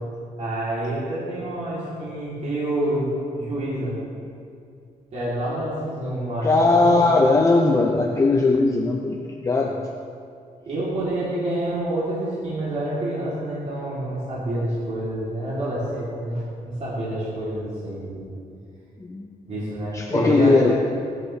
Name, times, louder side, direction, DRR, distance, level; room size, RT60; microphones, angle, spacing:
voice 1, 0.4-3.1 3.4-4.0 5.1-7.1 10.6-18.3 19.5-20.7, right 1 dB, 50° right, -9 dB, 3.2 m, -28 dB
voice 2, 6.4-9.2 9.4-9.8 19.1-19.3 19.9-20.7, left 3 dB, 20° left, 0 dB, 0.7 m, -18 dB
16.5 x 11.0 x 3.3 m, 2.4 s
wide cardioid pair, 150°, 15 cm